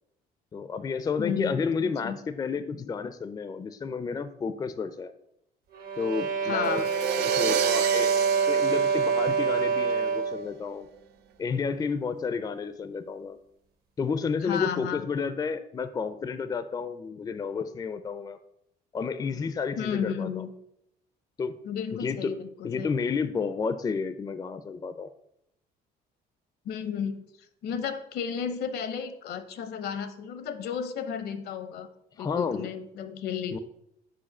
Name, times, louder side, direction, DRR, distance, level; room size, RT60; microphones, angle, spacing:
voice 1, 0.5-5.1 6.0-6.8 7.2-10.9 11.4-13.4 14.0-18.4 18.9-20.4 21.4-21.5 22.0-22.3 22.6-25.1 32.2-32.7 33.5-33.6, left 5 dB, 20° left, 11 dB, 0.4 m, -31 dB
voice 2, 1.2-2.2 6.4-6.9 14.4-15.1 19.8-20.5 21.6-22.9 26.6-31.9 32.2-33.6, left 7 dB, 70° left, 11 dB, 0.7 m, -33 dB
sound 1, 5.7-10.5, right 6 dB, 65° right, 1.1 m, -26 dB
sound 2, 6.6-9.9, right 9 dB, 80° right, 0.5 m, -32 dB
5.0 x 4.7 x 5.9 m, 0.76 s
cardioid pair, 110°, 17 cm